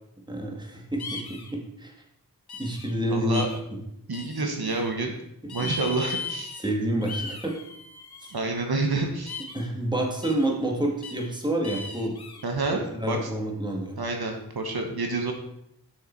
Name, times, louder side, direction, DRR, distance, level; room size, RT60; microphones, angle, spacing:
voice 1, 0.3-1.9 2.6-3.4 6.6-7.6 8.2-8.3 9.5-12.2 12.9-14.0, right 1 dB, 10° right, 0 dB, 1.9 m, -28 dB
sound 1, 1.0-1.5 2.5-2.9 3.3-3.6 4.1-4.9 5.5-6.7 7.0-8.3 9.3-9.7 10.2-10.5 11.0-11.3 11.6-12.4, left 4 dB, 90° left, 1.0 m, -37 dB
voice 2, 3.1-3.5 4.1-5.1 5.5-6.5 8.3-9.4 12.4-13.3 14.0-15.3, right 3 dB, 75° right, 2 dB, 1.2 m, -28 dB
6.6 x 6.6 x 4.5 m, 0.77 s
wide cardioid pair, 45°, 37 cm